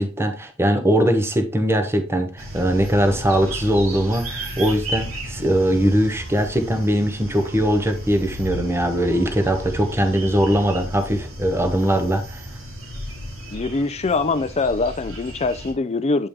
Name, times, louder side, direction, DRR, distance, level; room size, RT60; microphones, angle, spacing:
voice 1, 0.0-12.4, equal, 10° right, 1.1 m, -21 dB
sound 1, 2.4-15.7, equal, 80° right, 2.4 m, -34 dB
voice 2, 13.5-16.3, left 3 dB, 30° left, 0.5 m, -23 dB
8.7 x 4.9 x 3.6 m
head